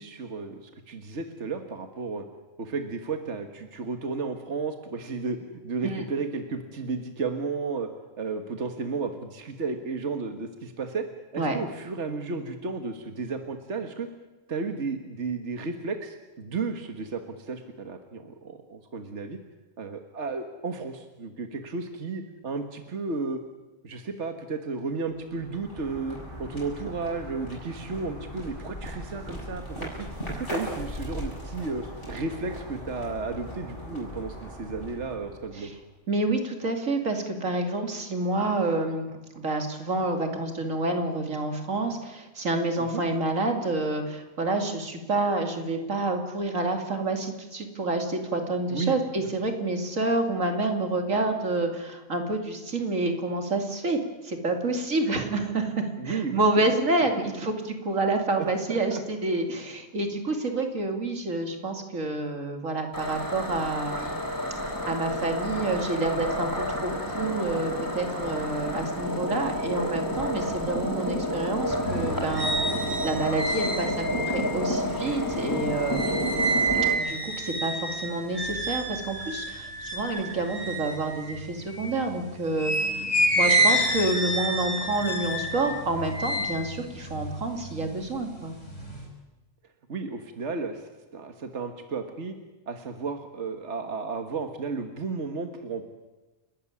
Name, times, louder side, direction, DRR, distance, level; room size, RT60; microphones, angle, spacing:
voice 1, 0.0-2.3 2.6-5.4 5.6-7.9 8.2-11.0 11.3-14.1 14.5-19.4 19.8-23.4 23.8-35.8 42.8-43.0 48.7-49.0 56.0-56.7 58.4-59.0 76.2-76.5 82.9-83.1 83.6-83.7 89.9-92.3 92.7-95.8, right 4 dB, 65° right, 6 dB, 1.9 m, -33 dB
sound 1, 25.1-35.8, equal, 40° left, 7.8 m, -39 dB
voice 2, 36.1-39.1 39.3-54.0 54.2-64.1 64.9-72.6 73.0-76.1 77.0-83.0 83.3-88.5, right 2 dB, 85° right, 4 dB, 3.0 m, -28 dB
sound 2, 62.9-76.9, equal, 15° left, 4.2 m, -30 dB
sound 3, 71.9-82.0 82.5-88.1 88.4-89.0, right 1 dB, 70° left, 8.0 m, -29 dB
29.5 x 13.5 x 9.7 m, 1.1 s
omnidirectional pair, 1.3 m